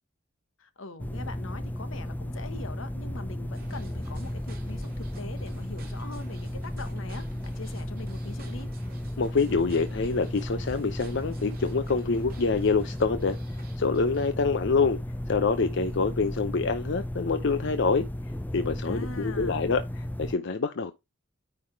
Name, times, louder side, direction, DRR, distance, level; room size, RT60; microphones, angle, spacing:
voice 1, 0.6-8.7 18.8-19.7, left 3 dB, 85° left, 1.2 m, -42 dB
sound 1, 1.0-20.3, left 1 dB, 10° left, 0.4 m, -34 dB
sound 2, 3.5-14.3, right 2 dB, 50° right, 2.6 m, -51 dB
voice 2, 9.2-13.4 13.8-15.0 15.3-18.1 18.5-20.9, left 4 dB, 65° left, 0.6 m, -26 dB
9.6 x 3.4 x 4.6 m
head